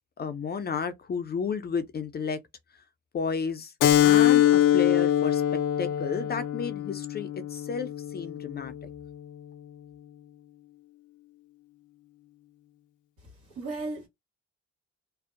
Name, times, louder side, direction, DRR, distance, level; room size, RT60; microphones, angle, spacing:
voice 1, 0.2-2.4 3.1-3.7 4.0-5.4 5.8-8.7, left 5 dB, 35° left, 0.4 m, -32 dB
Keyboard (musical), 3.8-8.9, left 11 dB, 85° left, 0.5 m, -23 dB
voice 2, 13.2-14.1, right 3 dB, 90° right, 1.2 m, -36 dB
2.5 x 2.0 x 2.4 m
cardioid pair, 90°, 30 cm